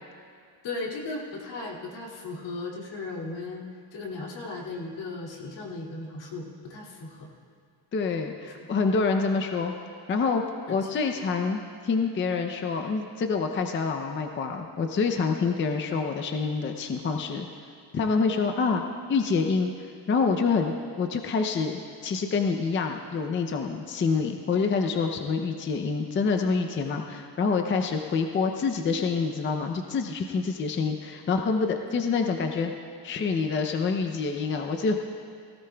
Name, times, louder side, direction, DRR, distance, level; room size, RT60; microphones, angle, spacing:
voice 1, 0.6-3.7 3.9-7.3 8.5-8.7 10.8-10.9, left 3 dB, 75° left, -2 dB, 2.5 m, -36 dB
voice 2, 7.9-9.7 10.1-10.4 10.7-17.5 17.9-32.7 33.0-35.0, left 4 dB, 25° left, 4 dB, 0.5 m, -27 dB
17.5 x 17.0 x 2.3 m, 2.2 s
cardioid pair, 160°, 44 cm